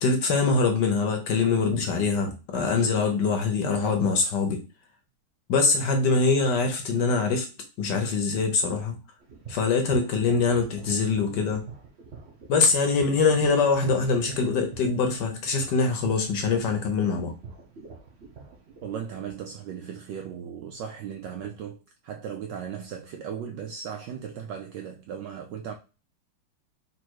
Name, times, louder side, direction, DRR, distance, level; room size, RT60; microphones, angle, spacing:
voice 1, 0.0-4.6 5.5-7.5 7.8-9.0 9.5-11.6 12.5-17.3, left 4 dB, 65° left, 1.2 m, -23 dB
sound 1, 9.2-19.5, right 5 dB, 60° right, 0.6 m, -45 dB
voice 2, 18.8-25.7, right 8 dB, 80° right, 1.0 m, -37 dB
4.3 x 2.6 x 4.5 m
omnidirectional pair, 2.4 m